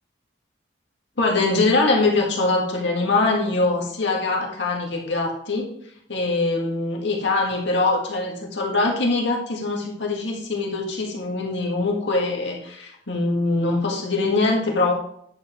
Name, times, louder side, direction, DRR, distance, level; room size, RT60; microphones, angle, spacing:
voice 1, 1.2-5.7 6.1-14.9, left 3 dB, 70° left, -1 dB, 1.9 m, -23 dB
10.0 x 7.1 x 3.1 m, 0.70 s
head